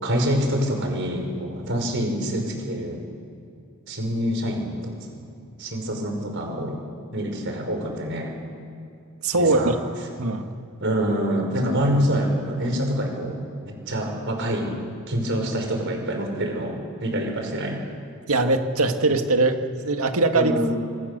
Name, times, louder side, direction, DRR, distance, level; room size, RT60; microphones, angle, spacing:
voice 1, 0.0-3.0 3.9-5.2 5.6-6.8 7.1-8.3 9.3-9.8 10.8-14.8 15.1-17.8 20.3-20.8, equal, 60° right, 3 dB, 5.3 m, -26 dB
voice 2, 9.2-9.8 10.2-10.5 18.3-20.5, right 2 dB, 85° right, 6 dB, 1.9 m, -21 dB
27.0 x 25.5 x 6.8 m, 2.5 s
head